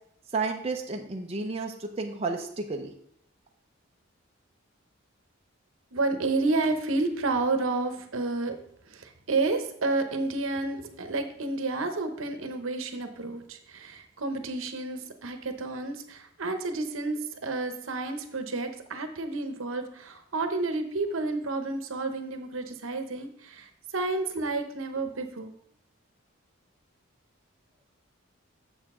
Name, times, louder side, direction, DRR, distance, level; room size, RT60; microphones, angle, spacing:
voice 1, 0.3-2.9, right 3 dB, 30° right, 2 dB, 0.5 m, -32 dB
voice 2, 5.9-25.5, right 3 dB, 75° right, 7 dB, 0.9 m, -30 dB
7.1 x 6.7 x 3.7 m, 0.69 s
head